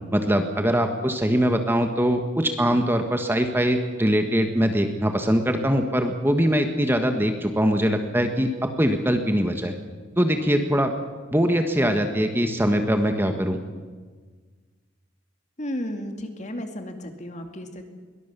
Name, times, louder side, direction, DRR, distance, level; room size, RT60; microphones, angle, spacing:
voice 1, 0.1-9.7 10.2-10.9 11.3-13.6, equal, 10° right, 6 dB, 1.4 m, -22 dB
voice 2, 15.6-17.9, equal, 35° left, 6 dB, 2.3 m, -33 dB
22.5 x 19.0 x 6.9 m, 1.4 s
head